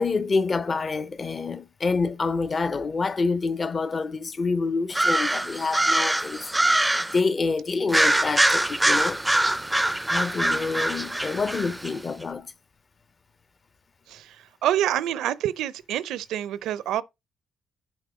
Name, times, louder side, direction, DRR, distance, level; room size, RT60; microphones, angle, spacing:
voice 1, 0.0-6.5 7.1-9.2 10.1-12.5, left 4 dB, 35° left, 0.7 m, -27 dB
sound 1, 4.9-7.2 7.9-11.9, right 1 dB, 10° right, 0.4 m, -23 dB
voice 2, 14.6-17.0, right 11 dB, 85° right, 0.6 m, -27 dB
7.2 x 4.7 x 5.0 m
cardioid pair, 90°, 0 cm